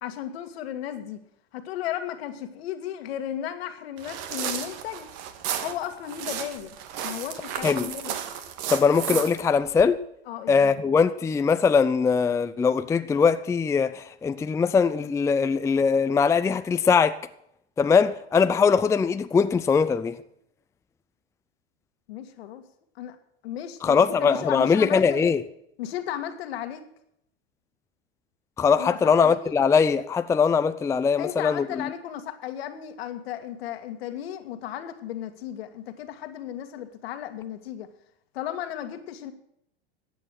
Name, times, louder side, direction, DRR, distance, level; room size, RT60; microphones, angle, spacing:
voice 1, 0.0-1.2 1.5-5.1 5.6-6.8 7.0-8.2 10.3-10.8 22.1-22.6 23.0-23.2 23.4-25.3 25.8-26.8 28.8-29.5 31.2-37.9 38.3-39.3, left 11 dB, 70° left, 1.9 m, -35 dB
sound 1, 4.0-9.8, right 9 dB, 50° right, 1.8 m, -33 dB
voice 2, 8.7-10.0 10.5-17.1 17.8-20.2 23.8-25.4 28.6-31.8, left 5 dB, 10° left, 0.5 m, -21 dB
15.5 x 9.2 x 6.4 m
hypercardioid pair, 105°, 31 cm